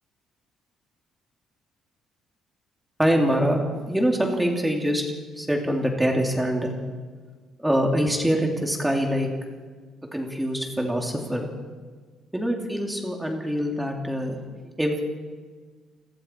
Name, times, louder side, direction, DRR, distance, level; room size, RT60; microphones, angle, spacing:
voice 1, 3.0-3.6 3.9-5.0 5.4-6.7 7.6-9.3 10.1-11.5 12.3-14.4 14.8-15.0, equal, 5° right, 1 dB, 2.7 m, -24 dB
29.5 x 21.0 x 4.5 m, 1.5 s
cardioid pair, 175°, 0 cm